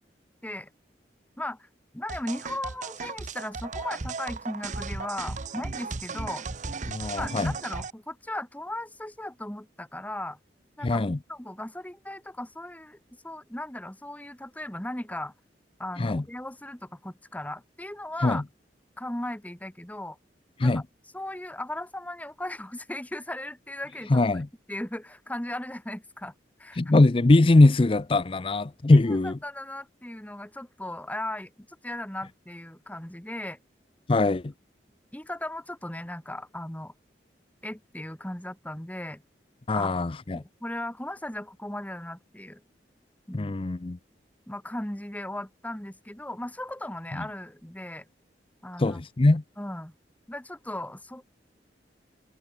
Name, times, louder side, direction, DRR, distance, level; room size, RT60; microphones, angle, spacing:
voice 1, 1.4-1.7 1.9-6.4 7.2-10.4 10.8-13.0 13.2-15.3 15.8-18.4 19.0-20.2 20.6-20.8 21.1-24.4 24.7-26.3 26.6-26.8 28.9-31.5 31.8-33.6 35.1-36.9 37.6-39.2 39.7-40.0 40.3-42.6 43.3-43.6 44.5-48.1 48.6-49.0 49.6-49.9 50.3-51.2, left 1 dB, 10° left, 1.4 m, -37 dB
sound 1, 2.1-7.9, right 4 dB, 45° right, 0.8 m, -36 dB
voice 2, 6.9-7.5 10.8-11.2 16.0-16.2 18.2-18.4 20.6-20.8 24.1-24.5 26.8-29.4 34.1-34.5 39.7-40.4 43.3-44.0 48.8-49.4, left 2 dB, 30° left, 0.5 m, -21 dB
head